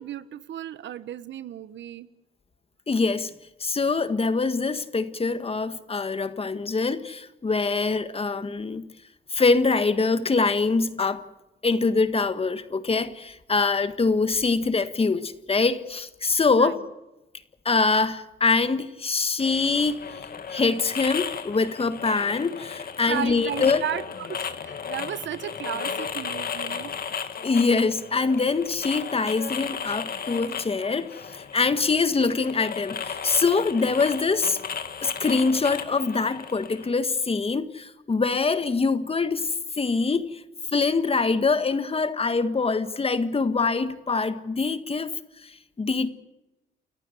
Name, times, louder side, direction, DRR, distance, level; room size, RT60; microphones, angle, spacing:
voice 1, 0.0-2.1 16.6-16.9 23.1-27.0, right 10 dB, 65° right, 1.1 m, -34 dB
voice 2, 2.9-3.3 3.6-8.8 9.3-11.2 11.6-16.8 17.6-20.0 20.5-23.8 27.4-34.6 35.0-40.4 40.7-45.1 45.4-46.1, left 4 dB, 30° left, 1.7 m, -24 dB
sound 1, 19.4-36.9, left 7 dB, 50° left, 2.0 m, -35 dB
29.5 x 14.5 x 8.2 m
cardioid pair, 90°, 20 cm